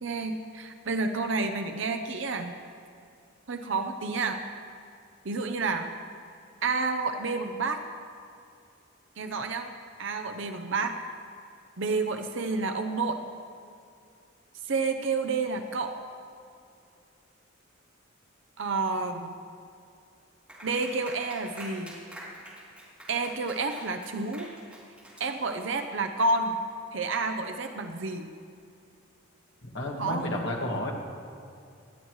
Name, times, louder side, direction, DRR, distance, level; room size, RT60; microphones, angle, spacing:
voice 1, 0.0-2.5 3.5-4.4 5.2-5.9 6.6-7.8 9.2-9.7 10.0-11.0 11.8-13.2 14.6-16.0 18.6-19.3 20.6-22.0 23.1-24.5 25.2-26.6 26.9-28.3 30.0-30.3, right 3 dB, 60° right, 6 dB, 0.7 m, -30 dB
Clapping, 20.5-25.8, right 1 dB, 5° right, 2.8 m, -45 dB
voice 2, 29.6-30.9, left 1 dB, 60° left, -1 dB, 1.9 m, -31 dB
19.0 x 12.5 x 3.2 m, 2.5 s
head